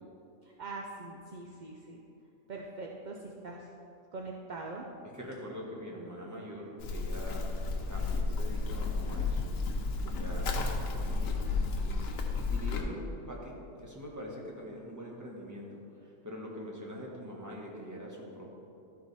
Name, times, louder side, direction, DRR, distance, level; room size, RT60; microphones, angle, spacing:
voice 1, 0.4-2.0 2.5-3.7 4.1-4.9, right 3 dB, 55° right, 0 dB, 0.5 m, -42 dB
voice 2, 5.1-7.6 7.9-9.4 10.0-10.5 10.8-18.5, equal, 15° right, -3 dB, 1.2 m, -44 dB
Livestock farm animals working animals, 6.8-12.8, left 3 dB, 90° left, 1.2 m, -32 dB
12.0 x 4.8 x 4.1 m, 2.8 s
omnidirectional pair, 1.4 m